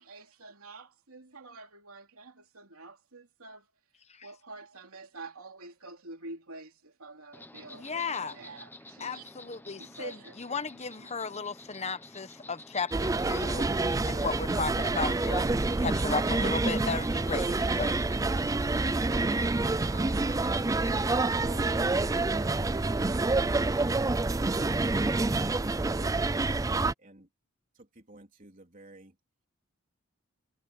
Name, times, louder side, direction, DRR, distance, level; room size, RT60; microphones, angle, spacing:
voice 1, 0.0-3.7 4.2-9.3 9.8-10.4, right 3 dB, 80° right, 3.0 m, -47 dB
Insect, 7.3-21.2, left 2 dB, 10° left, 1.2 m, -50 dB
voice 2, 7.7-8.3 9.0-17.9, left 4 dB, 30° left, 1.0 m, -35 dB
sound 1, 12.9-26.9, right 3 dB, 15° right, 0.4 m, -27 dB
voice 3, 19.2-20.5 27.0-27.3 27.7-29.2, right 2 dB, 40° right, 3.7 m, -52 dB
head